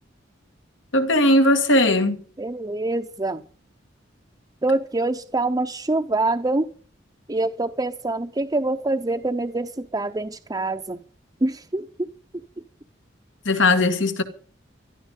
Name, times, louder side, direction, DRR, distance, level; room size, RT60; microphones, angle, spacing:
voice 1, 0.9-2.2 13.5-14.2, left 1 dB, 80° left, 2.0 m, -18 dB
voice 2, 2.4-3.4 4.6-6.7 7.3-11.0 11.4-11.8, right 2 dB, 20° right, 0.7 m, -25 dB
16.5 x 12.5 x 5.4 m
head